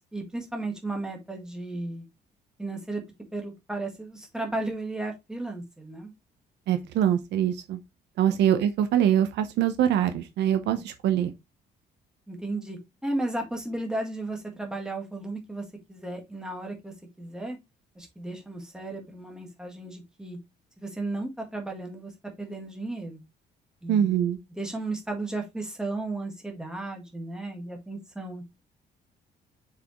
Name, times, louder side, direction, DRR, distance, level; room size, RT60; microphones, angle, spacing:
voice 1, 0.1-2.1 2.6-3.0 3.3-6.1 8.3-8.4 10.8-10.9 12.3-17.6 18.0-20.4 20.8-22.1 22.4-23.2 23.8-24.1 24.6-28.4, right 2 dB, 5° right, 1.8 m, -34 dB
voice 2, 6.7-7.8 8.2-11.3 23.9-24.4, right 10 dB, 80° right, 0.9 m, -24 dB
6.7 x 4.8 x 3.1 m
cardioid pair, 170°, 18 cm